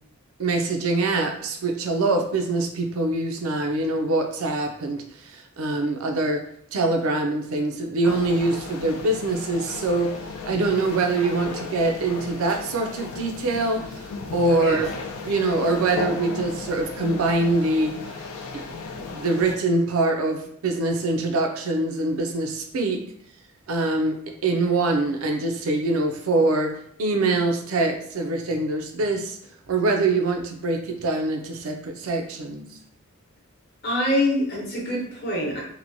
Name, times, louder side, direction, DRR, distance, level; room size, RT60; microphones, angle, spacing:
voice 1, 0.4-6.4 6.7-10.1 10.5-13.8 14.3-14.9 15.2-17.9 18.5-18.6 19.0-23.0 23.7-29.4 29.7-32.7, right 2 dB, 80° right, 4 dB, 0.4 m, -24 dB
sound 1, 8.0-19.6, left 4 dB, 85° left, 0.4 m, -35 dB
voice 2, 33.8-35.6, left 1 dB, 45° left, -3 dB, 0.8 m, -25 dB
2.9 x 2.1 x 2.6 m, 0.68 s
head